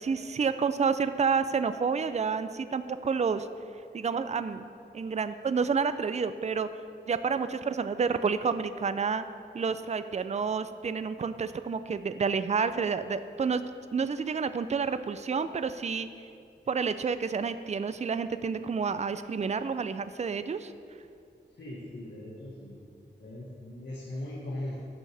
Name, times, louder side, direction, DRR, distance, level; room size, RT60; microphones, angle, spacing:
voice 1, 0.0-3.5 3.9-4.7 4.9-6.7 7.1-9.2 9.5-16.1 16.7-20.7, right 5 dB, 35° right, 12 dB, 0.4 m, -29 dB
voice 2, 21.5-22.8 23.2-24.8, left 1 dB, 70° left, -6 dB, 1.5 m, -39 dB
15.5 x 6.2 x 3.4 m, 2.4 s
wide cardioid pair, 75°, 19 cm